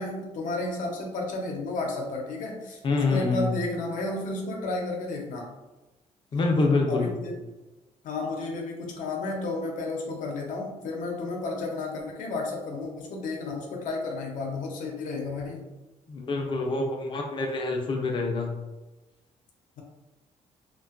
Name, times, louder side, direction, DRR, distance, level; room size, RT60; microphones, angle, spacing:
voice 1, 0.0-5.5 6.9-7.3 8.0-15.6, left 2 dB, 85° left, 0 dB, 0.6 m, -32 dB
voice 2, 2.8-3.6 6.3-7.1 16.1-18.6, left 3 dB, 40° left, 1 dB, 0.4 m, -26 dB
2.5 x 2.2 x 2.4 m, 1.1 s
cardioid pair, 140°, 13 cm